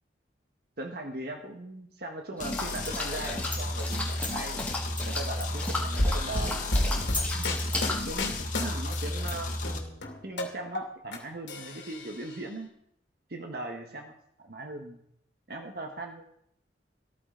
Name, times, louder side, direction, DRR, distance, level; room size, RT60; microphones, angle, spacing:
voice 1, 0.8-4.6 5.0-7.0 7.3-8.3 8.6-9.5 10.2-12.7 13.3-15.0 15.5-16.2, right 2 dB, 55° right, 3 dB, 1.3 m, -39 dB
sound 1, 2.4-9.8, left 1 dB, 45° left, 1.7 m, -33 dB
sound 2, 2.4-8.1, left 2 dB, 10° left, 2.1 m, -35 dB
sound 3, 6.0-9.3 9.6-11.2 11.5-12.4, left 1 dB, 75° left, 2.5 m, -30 dB
14.0 x 13.5 x 3.8 m, 0.71 s
head